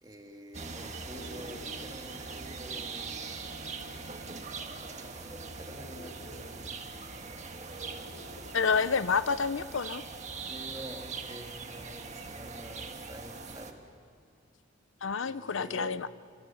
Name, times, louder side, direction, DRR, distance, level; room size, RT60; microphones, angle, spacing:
voice 1, 0.0-3.4 4.2-7.5 10.5-13.8 15.2-16.1, right 1 dB, 20° right, 3 dB, 2.2 m, -48 dB
sound 1, 0.5-13.7, right 4 dB, 35° right, 1.7 m, -41 dB
sound 2, 1.1-9.1, left 1 dB, 90° left, 2.6 m, -54 dB
voice 2, 8.5-10.0 15.0-16.1, left 5 dB, 70° left, 15 dB, 0.6 m, -28 dB
28.5 x 27.0 x 7.1 m, 2.3 s
head